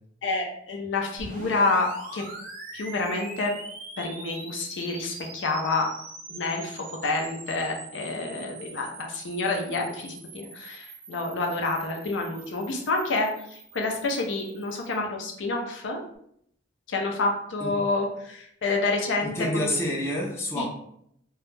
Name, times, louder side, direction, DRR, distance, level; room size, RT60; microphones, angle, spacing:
voice 1, 0.2-2.2 2.7-3.5 4.0-5.9 6.3-16.0 16.9-19.7 20.6-20.7, left 3 dB, 75° left, 2 dB, 0.5 m, -28 dB
sound 1, 1.2-15.0, right 3 dB, 45° right, 0.5 m, -43 dB
voice 2, 19.2-20.7, left 1 dB, 15° left, -2 dB, 0.5 m, -28 dB
2.2 x 2.0 x 3.1 m, 0.70 s
head